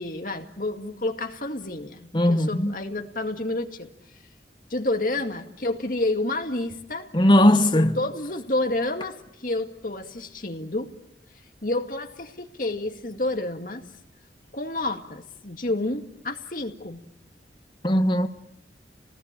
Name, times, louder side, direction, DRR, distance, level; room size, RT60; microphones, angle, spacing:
voice 1, 0.0-3.9 4.7-7.1 7.7-10.9 11.6-13.8 14.5-17.0, left 2 dB, 50° left, 2.2 m, -29 dB
voice 2, 2.1-2.7 7.1-8.0 17.8-18.3, left 1 dB, 25° left, 1.1 m, -18 dB
30.0 x 19.0 x 9.0 m
head